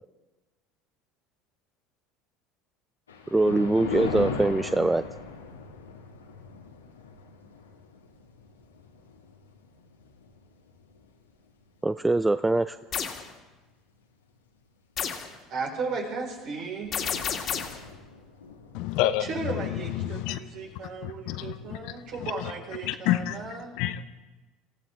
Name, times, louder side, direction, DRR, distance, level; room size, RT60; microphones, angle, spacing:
Thunder, 3.1-11.6 12.1-12.4 13.1-13.2 13.5-13.6 15.8-16.0 16.3-16.4 16.6-22.6, left 5 dB, 85° left, 1.6 m, -40 dB
voice 1, 3.3-5.0 11.8-12.8, right 2 dB, 10° right, 12 dB, 0.4 m, -23 dB
sound 1, 12.9-13.2 15.0-15.3 16.9-17.8, left 7 dB, 45° left, 2.1 m, -30 dB
voice 2, 15.1-16.9 19.2-23.8, right 4 dB, 55° right, 0 dB, 4.3 m, -35 dB
voice 3, 18.7-19.3 19.6-20.4 21.0-21.9 22.2-22.5 22.8-23.4 23.8-24.0, left 13 dB, 60° left, 12 dB, 0.8 m, -29 dB
26.5 x 15.5 x 3.5 m, 1.2 s
figure-of-eight pair, 70°, 0 cm